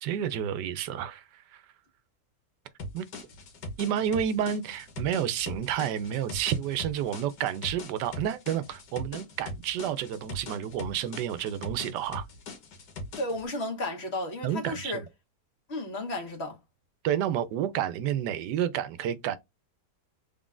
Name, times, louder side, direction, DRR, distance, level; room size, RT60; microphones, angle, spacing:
voice 1, 0.0-1.2 1.5-1.6 2.9-3.1 3.8-12.3 14.4-15.0 17.0-19.4, right 9 dB, 80° right, 1.2 m, -30 dB
sound 1, 2.8-13.5, left 2 dB, 90° left, 1.8 m, -41 dB
voice 2, 13.2-15.0 15.7-16.6, left 1 dB, 40° left, 1.6 m, -33 dB
3.7 x 3.6 x 2.5 m
omnidirectional pair, 1.8 m